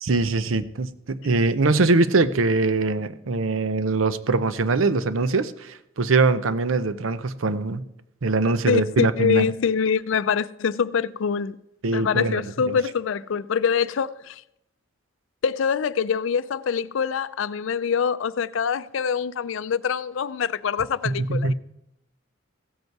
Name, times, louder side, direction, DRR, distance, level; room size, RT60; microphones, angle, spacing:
voice 1, 0.0-7.8 8.2-9.5 11.8-12.8 21.0-21.5, right 3 dB, 85° right, 0.7 m, -22 dB
voice 2, 8.7-11.6 11.9-14.4 15.4-21.5, left 6 dB, 75° left, 0.4 m, -24 dB
16.0 x 8.0 x 4.6 m
head